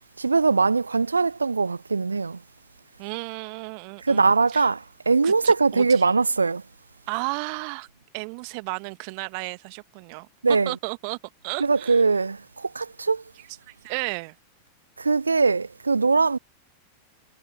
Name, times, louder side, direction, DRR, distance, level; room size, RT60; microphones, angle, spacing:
voice 1, 0.2-2.4 4.0-6.6 10.4-10.7 11.6-13.2 15.0-16.4, right 4 dB, 80° right, 0.3 m, -21 dB
voice 2, 3.0-4.7 5.2-6.0 7.1-7.9 8.1-10.3 10.6-11.2 11.4-12.0 13.7-14.3, right 38 dB, 45° right, 1.4 m, -33 dB
figure-of-eight pair, 90°, 0 cm